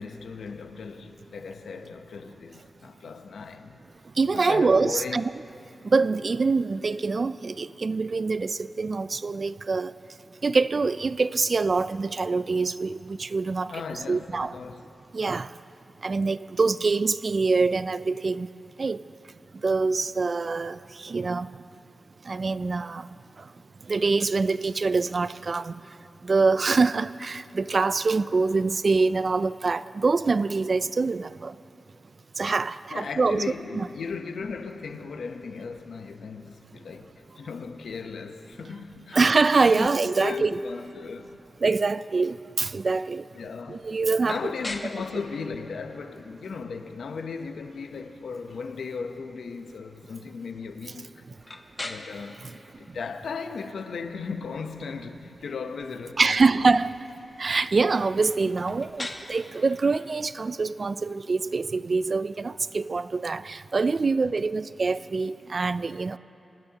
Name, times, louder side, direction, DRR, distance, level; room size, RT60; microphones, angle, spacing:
voice 1, 0.0-3.8 4.3-5.3 13.7-14.8 32.9-39.3 39.6-41.5 43.3-43.9 44.3-51.2 51.8-56.7 58.7-58.9, left 5 dB, 85° left, 0.8 m, -36 dB
voice 2, 4.2-5.3 5.8-9.9 10.4-13.7 14.1-14.5 15.1-15.5 16.0-18.5 18.8-19.0 19.6-21.5 22.3-23.1 23.4-23.5 23.9-25.9 26.2-31.5 32.4-33.4 33.8-33.9 39.1-40.5 41.6-43.3 43.7-44.4 56.2-57.0 57.4-66.2, right 4 dB, 50° right, 0.3 m, -25 dB
sound 1, 44.2-64.0, left 2 dB, 30° left, 1.1 m, -45 dB
24.5 x 19.5 x 2.9 m
wide cardioid pair, 80°, 0 cm